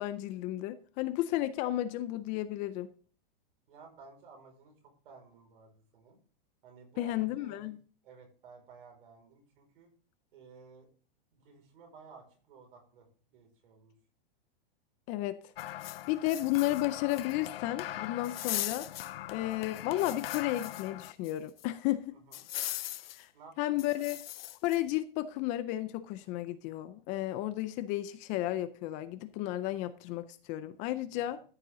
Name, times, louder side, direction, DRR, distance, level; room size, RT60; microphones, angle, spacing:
voice 1, 0.0-2.9 7.0-7.8 15.1-15.4 16.1-18.9 19.3-22.1 23.2-23.3 23.6-24.2 24.6-31.4, left 15 dB, 25° left, 0.4 m, -33 dB
voice 2, 3.7-6.2 6.6-7.7 8.0-9.9 10.3-10.9 11.3-13.9 22.1-22.4 23.3-24.1 31.1-31.4, right 5 dB, 70° right, 5.2 m, -55 dB
sound 1, 15.6-21.3 21.6-21.7 22.3-23.2 23.8-24.8, left 14 dB, 80° left, 0.6 m, -39 dB
14.0 x 6.7 x 3.7 m
supercardioid pair, 150°, 29 cm